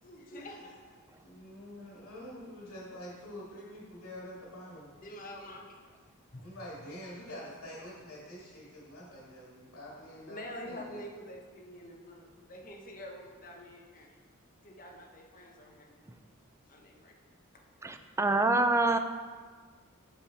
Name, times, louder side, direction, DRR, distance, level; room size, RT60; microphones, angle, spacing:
voice 1, 0.0-1.0 4.9-5.9 6.3-6.5 10.3-14.2 14.6-15.9 16.7-17.1, left 1 dB, 40° left, 0 dB, 1.0 m, -47 dB
voice 2, 1.2-4.9 6.4-11.0, equal, 70° left, -6 dB, 2.1 m, -46 dB
voice 3, 17.8-19.0, right 2 dB, 15° right, 7 dB, 0.3 m, -26 dB
7.1 x 5.5 x 4.2 m, 1.5 s
head